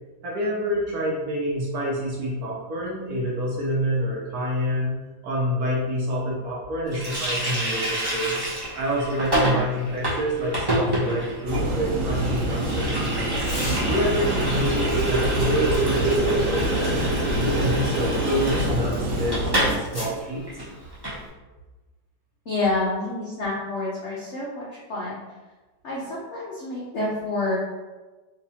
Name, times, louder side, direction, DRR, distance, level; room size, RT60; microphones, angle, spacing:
voice 1, 0.2-4.9 5.2-8.4 8.7-13.3 13.8-17.0 17.4-20.4, equal, 60° right, -4 dB, 1.1 m, -27 dB
Water tap faucet, 6.9-19.8 20.0-20.2 20.5-21.2, right 1 dB, 40° right, 0.3 m, -27 dB
sound 1, 11.5-19.8, right 1 dB, 85° right, 1.6 m, -26 dB
sound 2, 12.6-14.2 14.8-19.3 19.6-20.2, left 1 dB, 10° left, 0.7 m, -39 dB
voice 2, 22.5-25.2 25.8-27.6, left 2 dB, 75° left, -6 dB, 0.6 m, -28 dB
3.5 x 3.0 x 2.8 m, 1.2 s
omnidirectional pair, 2.1 m